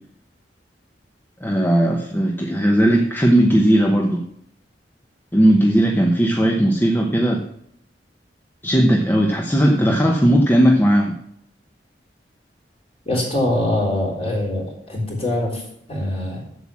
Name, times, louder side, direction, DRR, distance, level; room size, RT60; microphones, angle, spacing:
voice 1, 1.4-4.2 5.3-7.4 8.6-11.1, right 1 dB, 10° left, 2 dB, 0.8 m, -17 dB
voice 2, 13.1-16.4, left 1 dB, 35° left, -3 dB, 3.7 m, -23 dB
7.9 x 7.3 x 7.4 m, 0.72 s
head